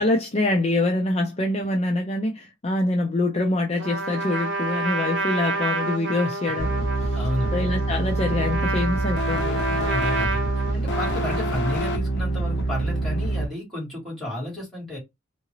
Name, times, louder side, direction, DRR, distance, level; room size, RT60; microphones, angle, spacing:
voice 1, 0.0-7.1 7.5-9.9, left 2 dB, 30° left, 0.5 m, -25 dB
Trumpet, 3.8-11.9, right 2 dB, 60° right, 1.0 m, -29 dB
sound 1, 6.6-13.5, right 2 dB, 55° left, 1.0 m, -25 dB
voice 2, 7.1-7.5 9.9-10.4 10.7-15.0, left 1 dB, ahead, 2.6 m, -32 dB
3.6 x 2.6 x 3.2 m
head